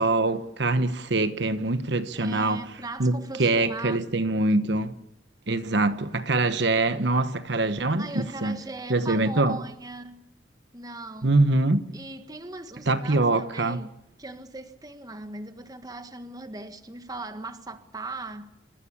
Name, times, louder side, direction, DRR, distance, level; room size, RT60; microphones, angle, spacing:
voice 1, 0.0-2.7 3.0-5.0 5.5-8.6 8.9-9.6 11.2-11.8 12.9-13.8, right 2 dB, 65° right, 1.2 m, -24 dB
voice 2, 2.2-4.1 7.9-10.3 10.7-11.3 11.9-18.5, right 2 dB, 20° right, 1.5 m, -39 dB
27.0 x 15.0 x 8.5 m
head